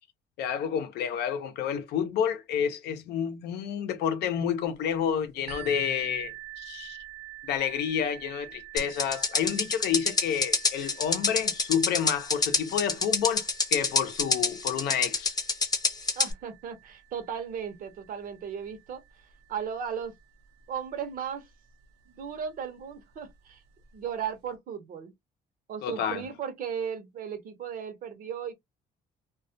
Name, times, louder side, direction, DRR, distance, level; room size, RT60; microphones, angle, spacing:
voice 1, 0.4-7.0 7.4-15.3 25.8-26.2, left 8 dB, 75° left, 0.6 m, -29 dB
sound 1, 5.5-21.0 21.8-21.9 22.4-22.5, right 12 dB, 90° right, 0.7 m, -48 dB
sound 2, 8.8-16.3, left 3 dB, 25° left, 0.7 m, -26 dB
voice 2, 16.2-19.0 19.5-20.2 20.7-21.5 22.1-23.6 23.9-25.1 25.7-28.5, right 7 dB, 55° right, 0.7 m, -36 dB
2.3 x 2.1 x 2.6 m
cardioid pair, 110°, 17 cm